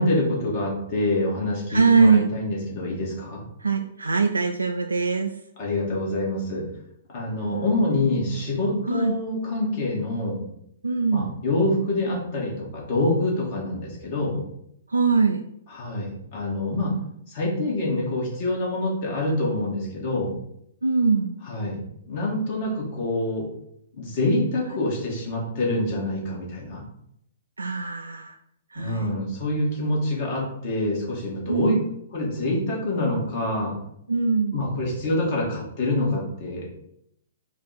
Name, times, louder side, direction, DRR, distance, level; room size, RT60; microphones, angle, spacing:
voice 1, 0.0-3.4 5.6-6.6 7.1-10.4 11.1-14.4 15.7-16.9 17.3-20.3 21.5-21.8 22.1-23.4 23.9-26.8 28.8-31.7 32.1-33.7 34.5-36.8, left 2 dB, 40° left, -2 dB, 1.7 m, -26 dB
voice 2, 1.7-2.3 3.6-5.4 7.5-7.7 8.8-9.1 10.8-11.4 14.9-15.4 20.8-21.4 27.6-28.4 28.7-29.1 31.5-31.8 34.1-34.6, right 4 dB, 80° right, 5 dB, 0.3 m, -22 dB
4.6 x 2.4 x 4.1 m, 0.74 s
figure-of-eight pair, 115°, 0 cm